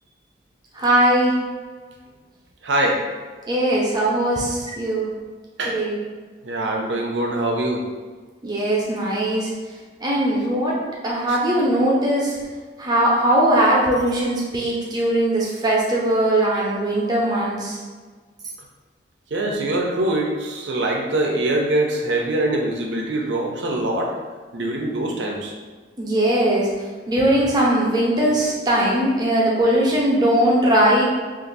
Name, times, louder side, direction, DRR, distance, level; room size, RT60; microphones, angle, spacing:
voice 1, 0.7-1.4 3.5-5.0 5.7-6.0 8.4-9.5 10.0-10.8 11.0-12.4 12.8-17.8 26.0-26.7 27.1-31.0, right 1 dB, 25° right, -4 dB, 0.7 m, -20 dB
voice 2, 2.6-3.0 5.6-5.8 6.4-7.8 11.3-11.4 19.3-24.2 24.5-25.5, right 1 dB, 80° right, 0 dB, 0.6 m, -23 dB
2.6 x 2.5 x 3.9 m, 1.5 s
head